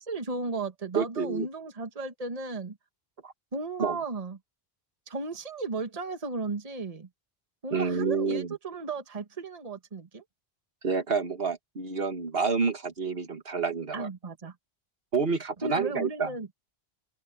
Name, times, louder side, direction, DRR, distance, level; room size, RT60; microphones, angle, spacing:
voice 1, 0.1-2.8 3.5-4.4 5.1-7.1 7.6-10.2 13.9-14.5 15.6-16.5, right 3 dB, 35° right, 1.5 m, -35 dB
voice 2, 1.0-1.5 3.2-3.3 3.8-4.0 7.7-8.5 10.8-14.1 15.1-16.3, right 5 dB, 65° right, 1.8 m, -28 dB
open air
omnidirectional pair, 1.1 m